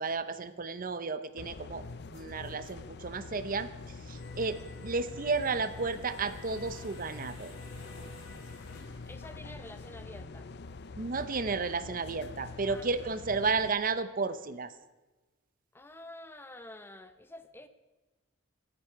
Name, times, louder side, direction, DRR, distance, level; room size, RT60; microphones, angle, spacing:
voice 1, 0.0-3.7 4.1-7.5 11.0-14.7, right 4 dB, 45° right, 12 dB, 0.7 m, -33 dB
sound 1, 1.4-13.7, left 3 dB, 55° left, 0.5 m, -45 dB
sound 2, 4.1-9.2, left 2 dB, 85° left, 3.4 m, -52 dB
voice 2, 9.1-10.5 12.7-12.9 15.7-17.7, left 1 dB, 10° left, 10 dB, 0.7 m, -48 dB
25.0 x 8.8 x 4.7 m, 1.2 s
head